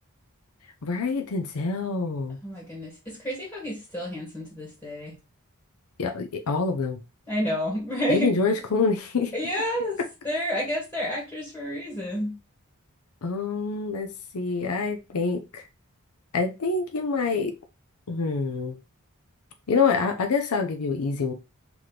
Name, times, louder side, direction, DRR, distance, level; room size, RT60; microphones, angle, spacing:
voice 1, 0.8-2.4 6.0-7.0 8.1-9.3 13.2-15.6 16.3-17.5 18.1-18.8 19.7-21.3, left 4 dB, 80° left, 0.6 m, -26 dB
voice 2, 2.4-5.2 7.3-8.3 9.3-10.0 10.2-12.3, equal, 15° left, 1.5 m, -30 dB
3.2 x 3.0 x 3.9 m
head